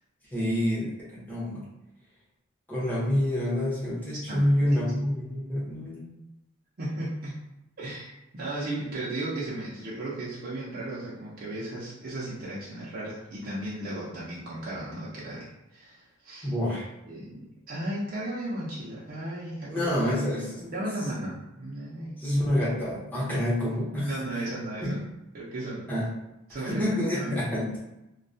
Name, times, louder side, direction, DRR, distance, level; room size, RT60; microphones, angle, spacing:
voice 1, 0.3-1.7 2.7-6.0 16.4-16.9 19.7-20.6 22.2-24.4 24.8-25.0 25.9-26.1 26.6-27.8, left 1 dB, 10° left, -9 dB, 0.8 m, -27 dB
voice 2, 4.3-4.8 6.8-7.4 7.8-16.5 17.1-19.9 20.6-22.3 24.0-25.0 25.3-25.9 26.5-26.8 27.1-27.4, right 1 dB, 45° right, -8 dB, 0.5 m, -35 dB
2.2 x 2.2 x 2.6 m, 0.93 s
head